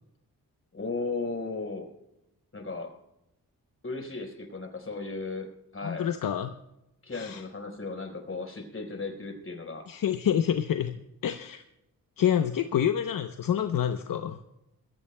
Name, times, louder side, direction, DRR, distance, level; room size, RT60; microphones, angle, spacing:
voice 1, 0.7-1.9 2.5-2.9 3.8-6.1 7.0-9.9, left 3 dB, 40° left, 3 dB, 4.5 m, -36 dB
voice 2, 5.8-6.5 7.1-7.4 9.9-11.6 12.2-14.4, left 9 dB, 70° left, 7 dB, 0.8 m, -27 dB
22.5 x 15.5 x 2.2 m, 0.87 s
cardioid pair, 65°, 35 cm